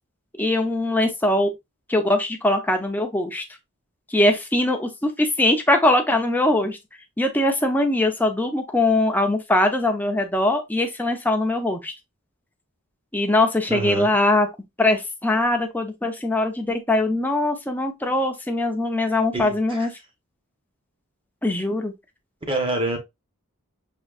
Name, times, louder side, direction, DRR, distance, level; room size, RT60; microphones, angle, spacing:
voice 1, 0.4-1.5 1.9-3.4 4.1-6.8 7.2-11.9 13.1-14.5 14.8-19.9 21.4-21.9, left 1 dB, 10° left, 0.6 m, -21 dB
voice 2, 13.7-14.1 19.3-19.9 22.5-23.0, right 2 dB, 25° right, 1.0 m, -26 dB
5.2 x 2.8 x 2.4 m
head